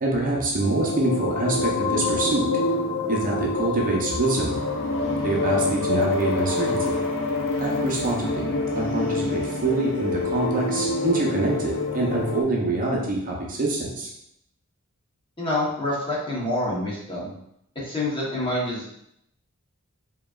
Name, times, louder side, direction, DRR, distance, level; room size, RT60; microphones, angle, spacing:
voice 1, 0.0-2.5 3.1-4.6 5.2-7.0 7.6-8.4 8.7-14.1, right 2 dB, 40° right, -2 dB, 0.7 m, -25 dB
sound 1, 0.6-12.4, left 3 dB, 60° left, 0.7 m, -26 dB
voice 2, 15.4-17.3 17.8-18.9, left 1 dB, 20° left, -5 dB, 1.1 m, -27 dB
4.8 x 2.9 x 2.4 m, 0.78 s
head